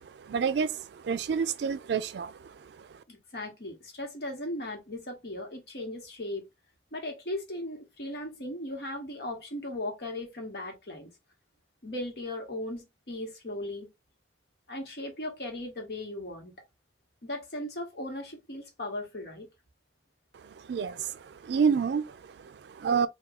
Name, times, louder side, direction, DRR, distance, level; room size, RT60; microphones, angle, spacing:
voice 1, 0.0-3.0 20.4-23.1, right 6 dB, 75° right, 0.3 m, -30 dB
voice 2, 3.1-6.4 6.9-11.1 11.8-13.9 14.7-16.5 17.2-19.5, left 1 dB, 65° left, 1.1 m, -37 dB
2.9 x 2.3 x 3.5 m
head